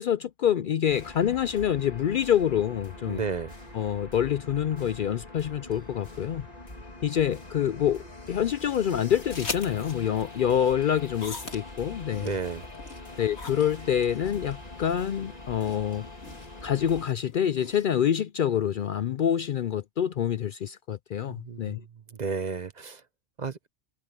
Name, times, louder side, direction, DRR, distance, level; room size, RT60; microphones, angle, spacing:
voice 1, 0.0-3.2 3.7-6.5 7.0-12.3 13.2-16.1 16.6-21.8, left 9 dB, 60° left, 0.6 m, -26 dB
sound 1, 0.9-17.0, left 2 dB, 35° left, 2.8 m, -44 dB
voice 2, 3.1-3.5 12.2-12.6 21.3-21.8 22.2-23.0 23.4-23.6, right 5 dB, 40° right, 0.9 m, -32 dB
sound 2, 9.3-18.1, left 4 dB, 80° left, 2.3 m, -42 dB
omnidirectional pair, 1.1 m